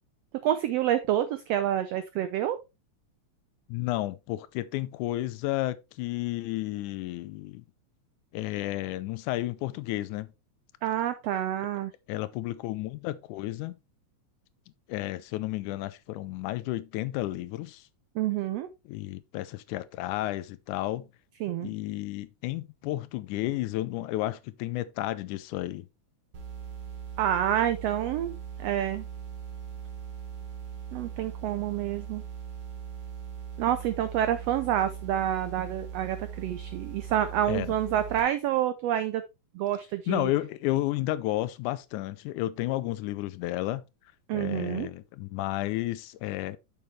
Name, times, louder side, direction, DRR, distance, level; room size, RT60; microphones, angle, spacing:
voice 1, 0.4-2.6 10.8-11.9 18.1-18.7 21.4-21.7 27.2-29.1 30.9-32.2 33.6-39.2 39.5-40.3 44.3-44.9, right 11 dB, 85° right, 1.4 m, -28 dB
voice 2, 3.7-7.7 8.3-10.3 12.1-13.8 14.9-17.8 18.9-21.1 21.6-25.9 37.5-37.7 40.1-43.8 44.3-46.6, left 16 dB, 80° left, 2.0 m, -32 dB
sound 1, 26.3-38.2, right 8 dB, 55° right, 2.9 m, -40 dB
7.0 x 6.8 x 3.2 m
omnidirectional pair, 3.6 m